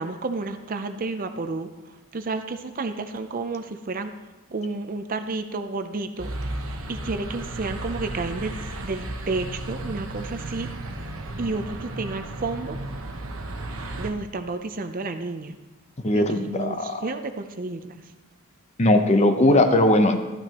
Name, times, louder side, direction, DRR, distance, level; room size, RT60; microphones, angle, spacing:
voice 1, 0.0-1.7 2.1-4.1 4.5-6.3 6.9-8.6 8.8-10.7 11.4-12.8 14.0-15.6 16.1-18.0, right 3 dB, 40° right, 8 dB, 0.5 m, -31 dB
sound 1, 6.2-14.1, right 1 dB, 70° right, 1.0 m, -34 dB
voice 2, 16.0-17.0 18.8-20.2, left 1 dB, 30° left, 6 dB, 0.8 m, -19 dB
12.5 x 12.0 x 3.0 m, 1.1 s
head